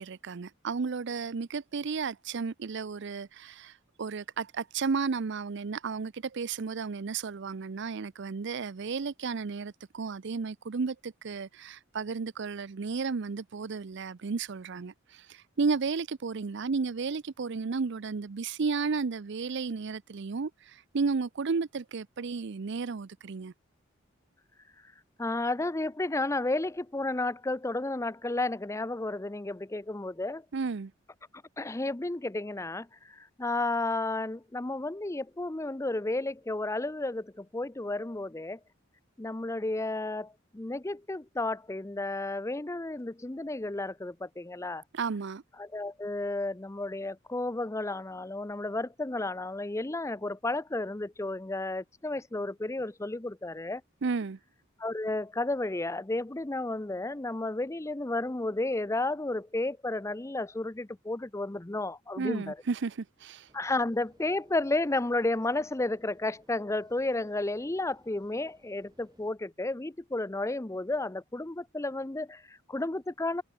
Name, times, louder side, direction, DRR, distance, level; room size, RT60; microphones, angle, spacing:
voice 1, 0.0-3.7 4.0-20.5 20.9-23.5 30.5-30.9 44.9-45.4 54.0-54.4 62.2-63.5, right 4 dB, 60° right, 0.5 m, -33 dB
voice 2, 25.2-30.4 31.6-38.6 39.2-44.8 45.6-53.8 54.8-62.6 63.5-73.4, left 2 dB, 15° left, 0.6 m, -32 dB
sound 1, 63.5-69.3, right 1 dB, 20° right, 6.3 m, -64 dB
head